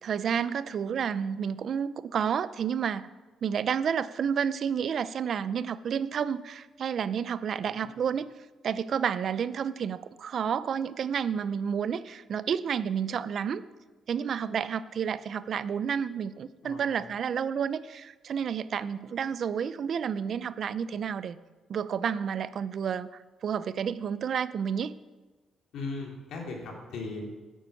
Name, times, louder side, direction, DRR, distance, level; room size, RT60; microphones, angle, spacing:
voice 1, 0.0-3.1 3.4-8.3 8.6-13.6 14.1-21.4 21.7-25.0, right 7 dB, 60° right, 16 dB, 0.5 m, -30 dB
voice 2, 7.6-7.9 16.6-16.9 25.7-27.3, left 3 dB, 75° left, 0 dB, 3.1 m, -38 dB
10.0 x 9.1 x 7.1 m, 1.3 s
cardioid pair, 90°, 0 cm